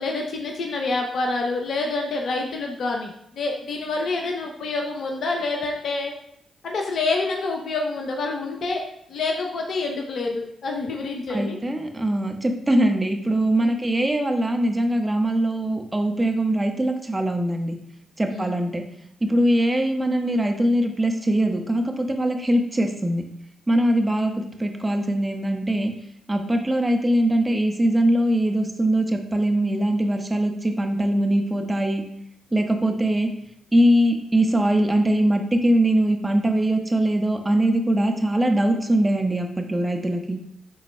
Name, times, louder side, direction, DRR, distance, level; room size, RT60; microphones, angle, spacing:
voice 1, 0.0-6.1 6.6-8.8 9.1-11.6 12.6-12.7 13.6-13.7 18.3-18.5 19.4-19.5, left 3 dB, 60° left, 2 dB, 0.7 m, -27 dB
voice 2, 11.3-17.8 18.2-18.8 19.2-23.2 23.7-25.9 26.3-32.0 32.5-33.3 33.7-40.4, right 1 dB, 20° right, 3 dB, 1.0 m, -22 dB
11.0 x 3.9 x 2.2 m, 0.75 s
hypercardioid pair, 40°, 0 cm